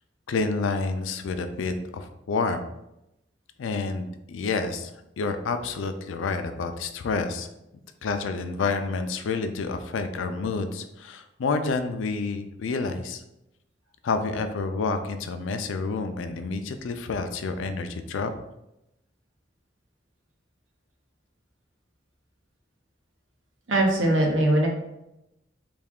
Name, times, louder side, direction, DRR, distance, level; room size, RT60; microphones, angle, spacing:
voice 1, 0.3-2.6 3.6-4.9 5.2-7.5 8.0-13.2 14.0-18.3, left 4 dB, 85° left, 8 dB, 0.4 m, -29 dB
voice 2, 23.7-24.7, right 1 dB, 80° right, 0 dB, 0.8 m, -21 dB
3.3 x 2.3 x 3.5 m, 0.87 s
head